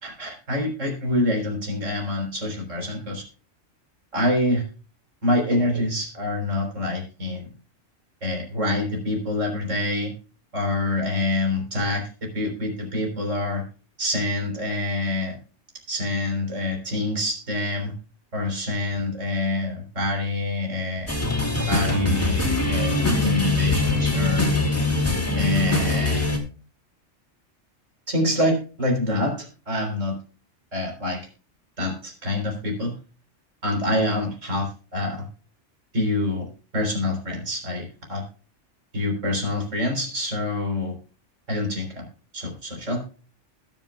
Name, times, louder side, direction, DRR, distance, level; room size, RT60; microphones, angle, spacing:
voice 1, 0.0-3.2 4.1-4.6 5.2-7.4 8.2-10.1 10.5-13.6 14.0-15.3 15.9-17.9 18.3-21.1 21.7-23.0 23.2-24.4 25.4-26.2 28.1-30.2 30.7-31.2 31.8-32.9 33.6-35.2 35.9-38.2 38.9-41.0 41.5-42.1 42.3-43.0, left 1 dB, 75° right, 2 dB, 4.3 m, -26 dB
sound 1, 21.1-26.4, left 2 dB, 10° left, 2.6 m, -22 dB
21.0 x 7.4 x 2.3 m, 0.36 s
omnidirectional pair, 1.3 m